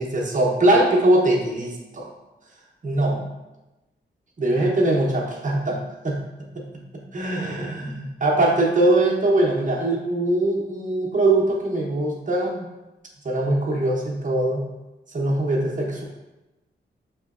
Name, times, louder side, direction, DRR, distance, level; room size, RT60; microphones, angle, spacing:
voice 1, 0.0-2.1 2.8-3.2 4.4-6.2 6.6-6.7 7.1-12.7 13.2-14.7 15.1-16.0, right 1 dB, 40° right, -2 dB, 0.7 m, -22 dB
5.0 x 2.9 x 2.3 m, 1.0 s
wide cardioid pair, 100°, 21 cm